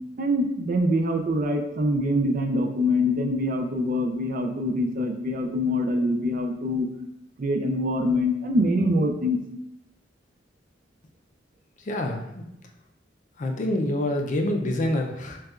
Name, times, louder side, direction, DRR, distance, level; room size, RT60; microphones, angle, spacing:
voice 1, 0.2-6.9 7.4-9.4, left 1 dB, 50° right, 4 dB, 0.4 m, -24 dB
voice 2, 11.8-12.4 13.4-15.4, left 1 dB, 45° left, 3 dB, 0.4 m, -27 dB
6.3 x 2.3 x 2.3 m, 0.85 s
head